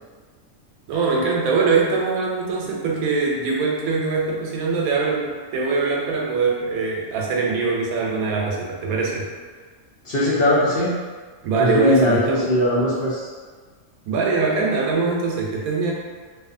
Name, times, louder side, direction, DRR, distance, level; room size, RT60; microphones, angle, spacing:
voice 1, 0.9-9.3 11.4-12.6 14.1-15.9, right 4 dB, 85° right, -2 dB, 1.0 m, -22 dB
voice 2, 10.0-10.9 11.6-13.3, left 1 dB, 55° left, -8 dB, 0.7 m, -20 dB
2.6 x 2.3 x 2.5 m, 1.5 s
omnidirectional pair, 1.5 m